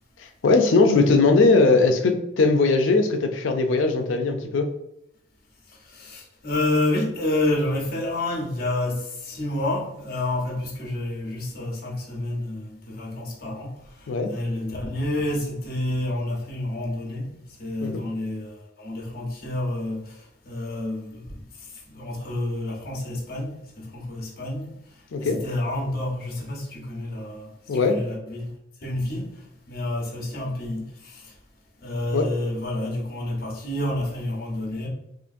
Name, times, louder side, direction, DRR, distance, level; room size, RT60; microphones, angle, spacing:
voice 1, 0.4-4.7 14.1-14.3 17.8-18.0 25.1-25.4 27.7-28.0 32.1-32.3, left 3 dB, 90° left, 0.4 m, -19 dB
voice 2, 5.7-21.3 21.6-24.8 25.2-28.5 28.8-31.3 31.8-34.9, left 1 dB, 50° left, 0.9 m, -29 dB
3.7 x 2.5 x 2.6 m
head